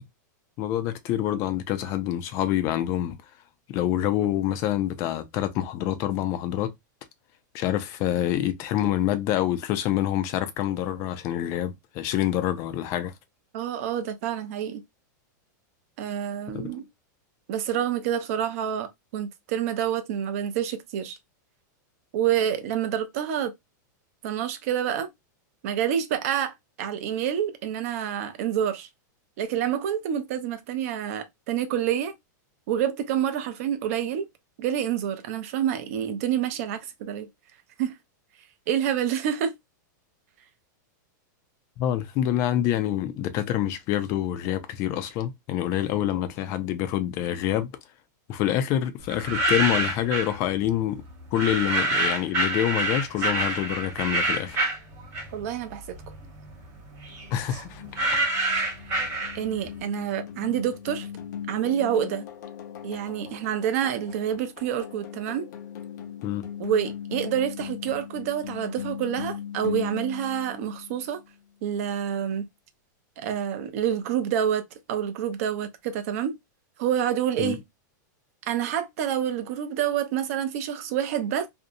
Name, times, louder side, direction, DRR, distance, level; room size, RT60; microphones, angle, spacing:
voice 1, 0.6-3.2 3.7-6.7 7.5-13.1 16.6-16.7 41.8-47.7 48.3-51.0 51.3-54.6 57.3-58.0 66.2-66.4 77.4-77.6, left 12 dB, 25° left, 0.3 m, -26 dB
voice 2, 13.5-14.8 16.0-16.9 17.5-21.2 22.1-23.5 24.2-25.1 25.6-28.9 29.4-32.2 32.7-34.3 34.6-37.3 37.8-37.9 38.7-39.5 55.3-55.8 59.3-61.1 61.5-62.2 62.8-65.5 66.6-71.2 71.6-72.4 73.2-74.6 74.9-76.4 76.8-77.6 78.4-81.5, right 9 dB, 45° right, 0.5 m, -27 dB
sound 1, 49.1-50.4 51.3-55.6 55.9-59.7, right 2 dB, 25° right, 0.9 m, -27 dB
sound 2, 57.1-71.3, left 9 dB, 65° left, 0.7 m, -39 dB
2.6 x 2.0 x 2.6 m
supercardioid pair, 165°, 10 cm